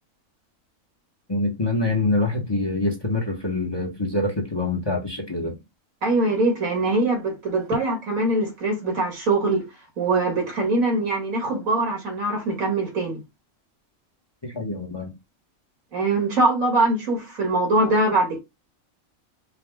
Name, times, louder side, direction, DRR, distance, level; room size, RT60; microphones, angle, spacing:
voice 1, 1.3-5.6 14.4-15.1, left 2 dB, 20° left, 0.9 m, -25 dB
voice 2, 6.0-9.6 10.0-13.2 15.9-18.4, right 2 dB, 80° right, 2.3 m, -22 dB
5.0 x 2.2 x 3.4 m
omnidirectional pair, 1.4 m